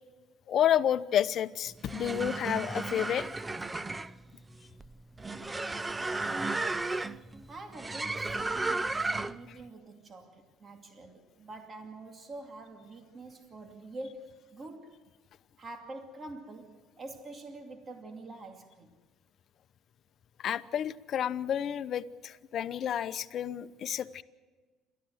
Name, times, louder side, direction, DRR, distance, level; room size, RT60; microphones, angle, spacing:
voice 1, 0.5-3.3 20.4-24.2, left 10 dB, 55° left, 0.8 m, -30 dB
sound 1, 1.7-9.5, right 3 dB, 15° right, 0.6 m, -34 dB
voice 2, 7.5-15.0 15.6-19.0, right 2 dB, 30° right, 2.5 m, -46 dB
28.5 x 13.5 x 7.9 m
cardioid pair, 110°, 0 cm